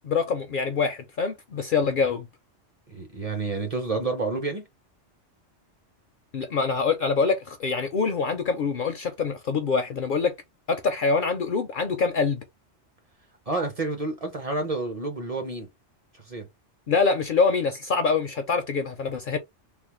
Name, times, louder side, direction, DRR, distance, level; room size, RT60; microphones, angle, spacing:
voice 1, 0.0-2.3 6.3-10.3 10.7-12.4 16.9-19.4, left 4 dB, 60° left, 0.6 m, -25 dB
voice 2, 2.9-4.7 13.5-15.7 16.3-16.5, right 3 dB, 35° right, 0.7 m, -29 dB
3.4 x 2.0 x 3.0 m
omnidirectional pair, 1.2 m